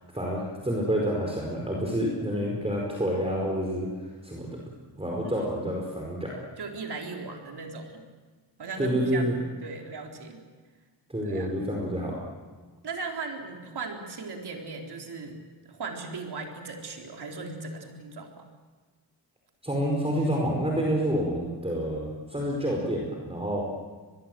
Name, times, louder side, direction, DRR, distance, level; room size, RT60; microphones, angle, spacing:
voice 1, 0.1-4.6 5.0-6.3 8.8-9.4 11.1-12.2 19.6-23.7, equal, 15° right, -2 dB, 4.8 m, -28 dB
voice 2, 5.2-5.6 6.6-8.0 8.6-10.4 11.2-11.5 12.8-18.5, right 3 dB, 65° right, 2 dB, 4.2 m, -38 dB
23.5 x 22.0 x 7.8 m, 1.4 s
cardioid pair, 85°, 42 cm